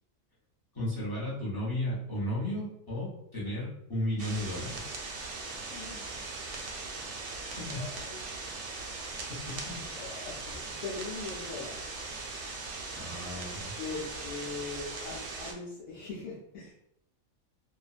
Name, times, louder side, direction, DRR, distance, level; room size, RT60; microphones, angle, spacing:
voice 1, 0.7-5.0 7.7-7.8 12.9-13.7, left 1 dB, 20° left, -9 dB, 0.7 m, -34 dB
sound 1, 4.2-15.5, right 3 dB, 70° right, 0.9 m, -39 dB
voice 2, 5.6-6.1 7.7-8.2 9.9-11.8 13.8-16.7, left 4 dB, 80° left, -7 dB, 1.0 m, -41 dB
2.6 x 2.2 x 2.3 m, 0.80 s
omnidirectional pair, 1.5 m